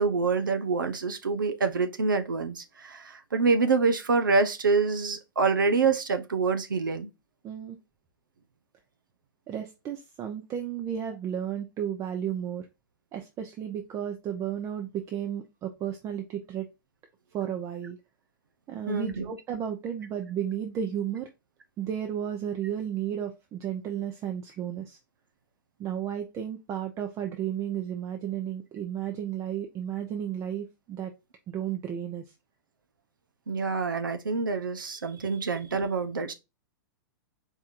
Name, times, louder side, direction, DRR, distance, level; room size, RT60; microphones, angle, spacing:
voice 1, 0.0-7.1 18.9-19.3 33.5-36.3, right 4 dB, 85° right, 0.6 m, -26 dB
voice 2, 7.4-7.8 9.5-12.7 13.1-16.7 17.3-18.0 18.7-21.3 21.8-25.0 25.8-31.1 31.5-32.2, right 9 dB, 30° right, 0.7 m, -33 dB
4.5 x 3.5 x 2.5 m
hypercardioid pair, 105°, 11 cm